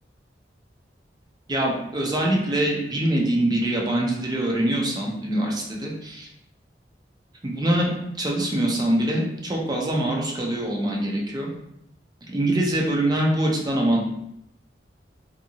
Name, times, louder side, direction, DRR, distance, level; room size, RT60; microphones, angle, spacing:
voice 1, 1.5-6.3 7.4-11.5 12.3-14.0, right 1 dB, 25° right, -1 dB, 0.5 m, -24 dB
2.8 x 2.5 x 2.6 m, 0.80 s
head